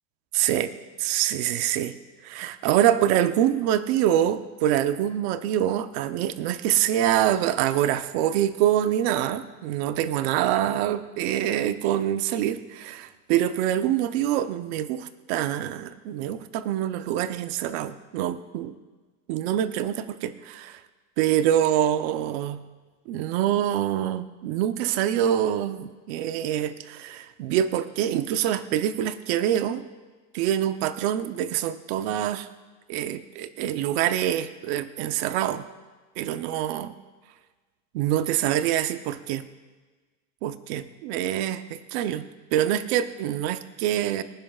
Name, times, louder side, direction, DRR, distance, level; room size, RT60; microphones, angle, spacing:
voice 1, 0.3-0.7 1.0-1.9 2.2-18.7 19.3-20.8 21.2-22.6 23.1-29.8 30.3-32.5 32.9-35.6 36.2-36.9 37.9-39.4 40.4-44.2, right 11 dB, 50° right, 11 dB, 0.7 m, -25 dB
24.5 x 10.5 x 2.4 m, 1.3 s
supercardioid pair, 170°, 39 cm